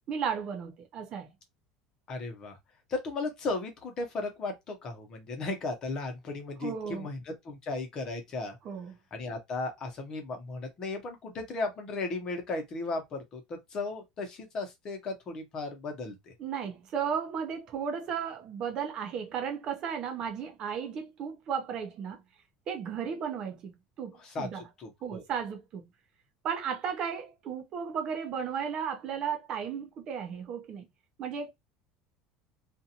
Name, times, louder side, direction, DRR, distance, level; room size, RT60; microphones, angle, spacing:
voice 1, 0.1-1.3 6.6-7.1 8.6-8.9 16.4-22.2 22.7-23.7 24.0-24.6 25.0-25.8 26.4-30.8 31.2-31.5, right 7 dB, 40° right, 0.7 m, -34 dB
voice 2, 2.1-2.6 2.9-8.6 9.1-16.3 24.2-25.2, left 3 dB, 35° left, 0.9 m, -36 dB
2.5 x 2.5 x 2.8 m
cardioid pair, 150°, 2 cm